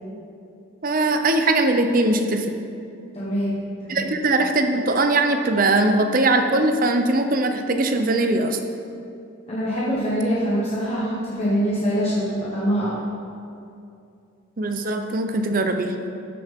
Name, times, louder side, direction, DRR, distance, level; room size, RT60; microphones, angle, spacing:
voice 1, 0.8-2.5 3.9-8.6 14.6-15.9, right 2 dB, 40° right, 6 dB, 0.6 m, -20 dB
voice 2, 3.1-4.1 9.5-13.0, equal, 30° left, -7 dB, 1.1 m, -24 dB
13.0 x 6.7 x 3.6 m, 2.6 s
head